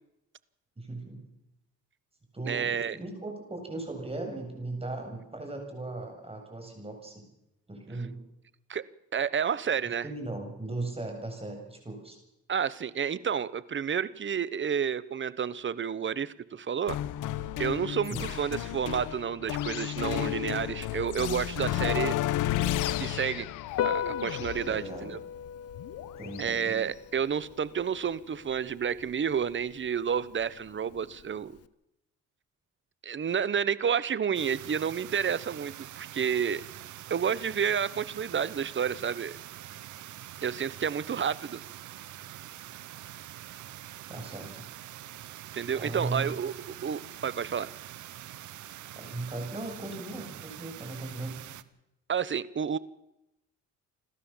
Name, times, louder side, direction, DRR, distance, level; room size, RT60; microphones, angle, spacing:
voice 1, 0.8-1.2 2.3-7.3 7.7-8.2 10.0-12.2 18.1-18.2 24.6-25.2 26.2-26.7 44.1-44.6 45.8-46.3 48.9-51.4, right 2 dB, 20° right, 3 dB, 7.7 m, -38 dB
voice 2, 2.5-3.0 8.7-8.8 9.1-10.1 12.5-17.0 17.6-22.2 23.0-23.5 23.8-25.2 26.4-31.6 33.0-36.6 37.1-39.3 40.4-41.6 45.5-46.5 46.8-47.7 52.1-52.8, right 7 dB, 40° right, 18 dB, 1.0 m, -30 dB
sound 1, 16.9-26.6, left 13 dB, 85° left, 1.0 m, -32 dB
Piano, 23.7-31.7, left 9 dB, 55° left, 1.0 m, -39 dB
sound 2, 34.3-51.6, right 13 dB, 75° right, 1.0 m, -45 dB
29.0 x 12.5 x 7.3 m, 0.88 s
cardioid pair, 90°, 30 cm